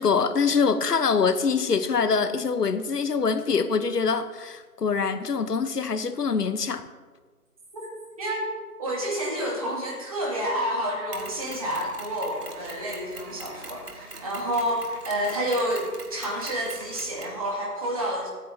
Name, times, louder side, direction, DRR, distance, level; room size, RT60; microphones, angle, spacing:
voice 1, 0.0-6.9, left 5 dB, 90° left, 11 dB, 1.0 m, -24 dB
voice 2, 8.2-8.5 8.8-18.3, equal, 25° right, -4 dB, 2.6 m, -29 dB
Mechanisms, 11.1-17.4, right 3 dB, 85° right, 2.3 m, -43 dB
22.5 x 9.3 x 2.8 m, 1.4 s
figure-of-eight pair, 170°, 46 cm